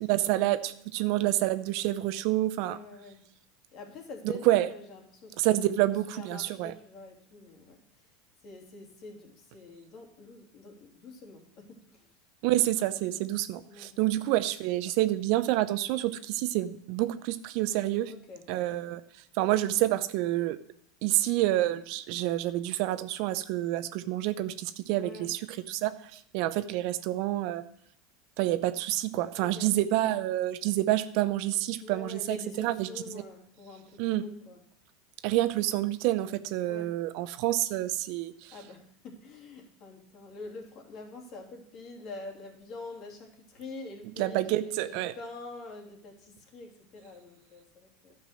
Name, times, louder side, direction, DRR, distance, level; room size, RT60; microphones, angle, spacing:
voice 1, 0.1-2.8 4.5-4.7 5.4-6.7 12.4-18.1 18.5-19.0 19.3-20.6 21.0-25.4 25.7-27.6 28.4-33.2 34.0-34.3 35.2-38.5 44.2-45.1, right 15 dB, 60° right, 13 dB, 0.6 m, -28 dB
voice 2, 2.6-3.2 3.7-5.6 5.9-7.8 8.4-12.1 13.0-13.3 13.7-14.0 18.1-18.4 25.0-25.3 29.4-29.7 31.8-34.6 36.6-36.9 38.5-48.2, left 3 dB, 50° left, 1 dB, 2.8 m, -46 dB
11.0 x 5.7 x 6.5 m, 0.68 s
hypercardioid pair, 95°, 0 cm